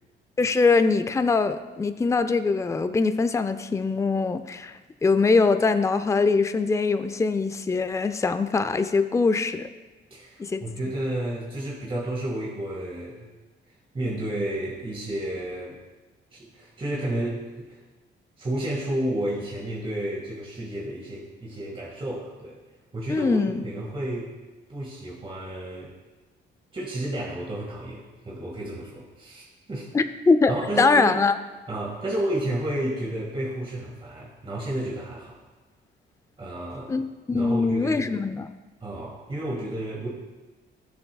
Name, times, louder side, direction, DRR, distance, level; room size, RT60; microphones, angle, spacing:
voice 1, 0.4-9.7 10.4-10.6 23.1-23.6 29.9-30.5 30.8-31.4 36.9-38.5, left 4 dB, 15° left, 10 dB, 0.4 m, -22 dB
voice 2, 10.1-13.2 13.9-15.8 16.3-17.8 18.4-22.6 22.9-24.3 24.7-25.9 26.7-29.9 30.5-31.2 31.7-35.4 36.4-36.9 37.3-38.0 38.8-40.1, right 1 dB, 25° right, -4 dB, 1.9 m, -31 dB
13.5 x 7.0 x 2.3 m, 1.2 s
cardioid pair, 90°, 20 cm